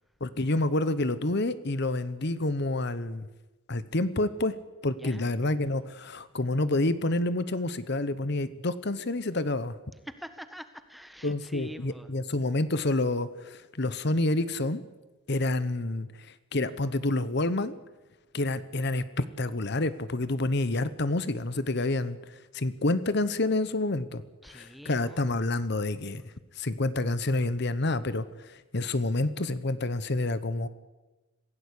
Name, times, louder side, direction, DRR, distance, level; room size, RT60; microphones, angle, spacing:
voice 1, 0.2-3.3 3.7-4.6 4.8-9.8 11.2-14.8 15.3-17.7 18.3-24.2 24.5-26.2 26.6-30.7, left 2 dB, 55° left, 14 dB, 1.1 m, -28 dB
voice 2, 5.0-5.3 10.0-12.1 24.4-25.3, equal, ahead, 10 dB, 1.4 m, -45 dB
26.0 x 16.5 x 8.5 m, 1.1 s
head